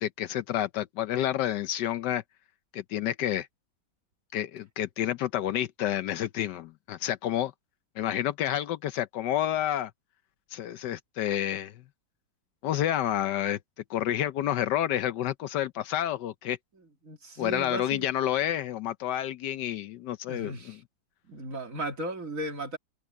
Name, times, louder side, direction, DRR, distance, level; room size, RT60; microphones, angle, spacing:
voice 1, 0.0-2.2 2.7-3.5 4.3-7.5 8.0-9.9 10.5-11.8 12.6-13.6 13.9-16.6 17.4-20.8, left 11 dB, 75° left, 1.2 m, -29 dB
voice 2, 16.8-18.0 20.3-20.8 21.3-22.8, right 1 dB, 45° right, 2.9 m, -36 dB
omnidirectional pair, 2.0 m